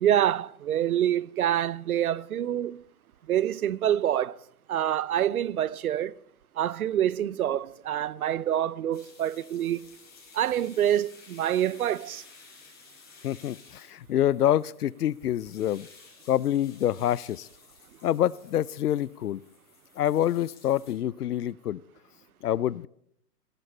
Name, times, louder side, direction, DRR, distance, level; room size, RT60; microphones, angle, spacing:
voice 1, 0.0-2.8 3.3-4.4 4.7-6.1 6.6-9.8 10.3-12.2, right 11 dB, 65° right, 0.7 m, -26 dB
sound 1, 8.9-20.9, left 5 dB, 20° left, 5.5 m, -54 dB
voice 2, 13.2-15.9 16.3-17.5 18.0-19.4 20.0-21.8 22.4-22.9, left 11 dB, 70° left, 0.6 m, -26 dB
17.0 x 12.0 x 4.3 m
figure-of-eight pair, 120°, 47 cm